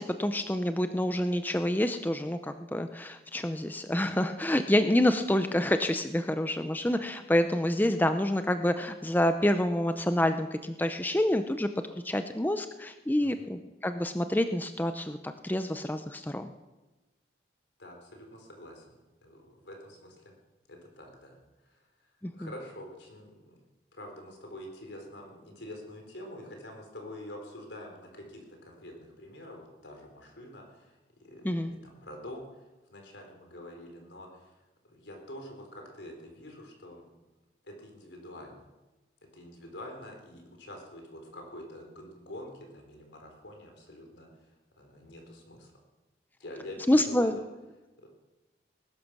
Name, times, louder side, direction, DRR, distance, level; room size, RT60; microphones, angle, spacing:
voice 1, 0.0-11.7 12.0-16.5 22.2-22.5 31.4-31.7 46.9-47.3, left 1 dB, 10° left, 9 dB, 0.6 m, -27 dB
voice 2, 13.2-13.5 17.8-20.2 20.7-21.4 21.7-21.8 22.3-23.6 23.9-30.9 31.2-34.6 34.8-37.1 37.6-38.7 39.3-44.5 44.8-45.7 46.4-47.4 48.0-48.1, left 1 dB, 85° left, 2 dB, 4.1 m, -46 dB
20.0 x 11.5 x 6.1 m, 1.1 s
head